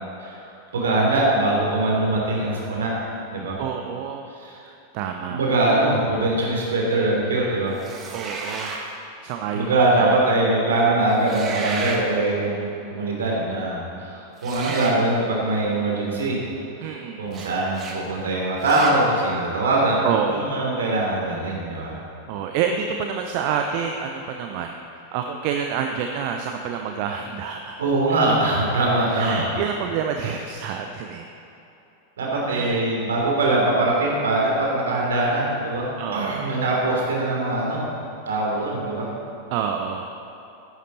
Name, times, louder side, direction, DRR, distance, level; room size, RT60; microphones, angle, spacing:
voice 1, 0.2-3.1 3.3-3.6 4.4-4.6 5.3-7.8 9.5-12.6 12.9-16.4 16.8-16.9 17.2-22.0 27.8-29.5 32.2-37.9 38.3-39.1, right 2 dB, 65° right, -3 dB, 3.2 m, -22 dB
voice 2, 3.6-4.3 4.5-5.4 8.1-8.8 9.2-10.1 14.6-14.8 16.8-17.2 20.0-20.5 22.3-27.8 29.1-31.3 32.5-32.8 36.0-36.5 39.5-40.1, right 7 dB, 45° right, 4 dB, 0.7 m, -28 dB
sound 1, 7.8-8.9 11.1-12.0 14.4-15.0 17.3-17.5 17.7-18.0 18.6-19.0, right 3 dB, 25° right, 1.8 m, -32 dB
14.0 x 10.5 x 4.2 m, 3.0 s
figure-of-eight pair, 90°, 0 cm